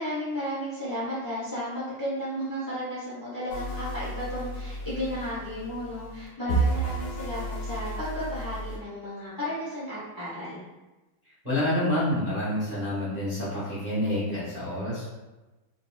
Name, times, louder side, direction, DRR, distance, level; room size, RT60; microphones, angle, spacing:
voice 1, 0.0-10.6, equal, 35° left, -10 dB, 0.3 m, -33 dB
sound 1, 3.5-8.8, right 2 dB, 70° left, 1.3 m, -32 dB
voice 2, 11.4-15.1, left 1 dB, 40° right, -11 dB, 0.6 m, -28 dB
3.8 x 2.2 x 2.3 m, 1.1 s
omnidirectional pair, 2.2 m